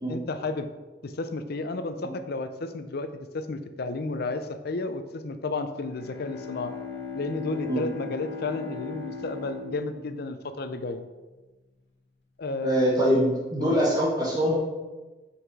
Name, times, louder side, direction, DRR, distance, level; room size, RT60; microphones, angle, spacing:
voice 1, 0.1-0.7 1.0-6.8 7.1-11.1 12.4-12.8 13.6-13.8, left 3 dB, 60° left, 9 dB, 0.5 m, -32 dB
Bowed string instrument, 5.7-11.4, left 5 dB, 80° left, 1.5 m, -39 dB
voice 2, 12.6-14.6, equal, 25° right, -4 dB, 1.4 m, -23 dB
5.7 x 5.7 x 4.8 m, 1.2 s
head